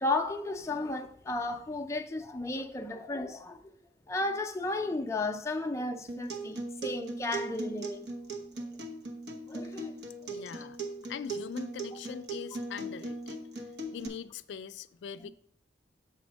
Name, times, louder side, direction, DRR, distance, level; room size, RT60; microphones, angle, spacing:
voice 1, 0.0-3.6 4.1-8.1 9.4-9.9 10.5-10.6 15.2-15.3, left 2 dB, 15° left, 0.5 m, -34 dB
Acoustic guitar, 6.1-14.1, right 2 dB, 75° right, 1.0 m, -39 dB
voice 2, 10.3-10.8 11.0-13.6 13.9-15.3, left 7 dB, 85° left, 0.3 m, -42 dB
6.9 x 4.3 x 6.2 m
head